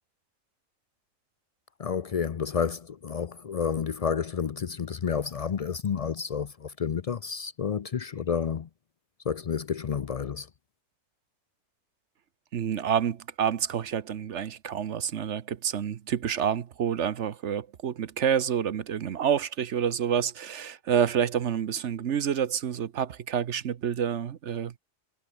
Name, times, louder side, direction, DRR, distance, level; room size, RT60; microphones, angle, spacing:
voice 1, 1.8-8.7 9.2-10.5, left 7 dB, 75° left, 0.3 m, -30 dB
voice 2, 12.5-24.7, right 8 dB, 60° right, 1.1 m, -28 dB
omnidirectional pair, 1.4 m